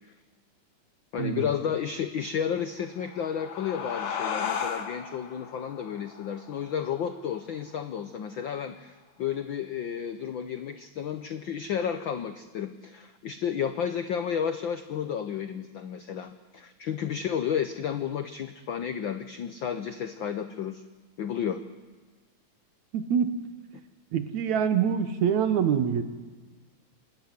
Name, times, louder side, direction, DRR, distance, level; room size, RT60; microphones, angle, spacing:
voice 1, 1.1-20.8 21.2-21.6, left 8 dB, 85° left, 9 dB, 1.0 m, -32 dB
sound 1, 2.8-8.0, left 7 dB, 70° left, 2.8 m, -36 dB
voice 2, 22.9-23.3 24.1-26.0, right 8 dB, 75° right, 9 dB, 2.6 m, -25 dB
27.0 x 12.5 x 9.6 m, 1.4 s
omnidirectional pair, 3.3 m